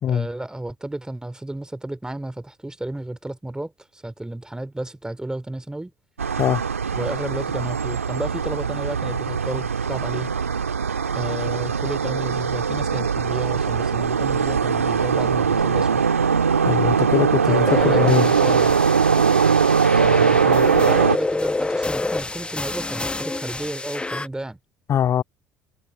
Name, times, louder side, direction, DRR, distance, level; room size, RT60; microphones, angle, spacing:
voice 1, 0.1-5.9 6.9-10.3 11.1-16.0 17.5-18.8 20.0-24.6, right 1 dB, 10° right, 3.2 m, -32 dB
sound 1, 6.2-21.2, right 6 dB, 90° right, 1.7 m, -21 dB
voice 2, 16.6-18.3 24.9-25.2, left 9 dB, 45° left, 2.8 m, -21 dB
sound 2, 17.6-24.3, left 2 dB, 15° left, 1.2 m, -28 dB
figure-of-eight pair, 55°, 7 cm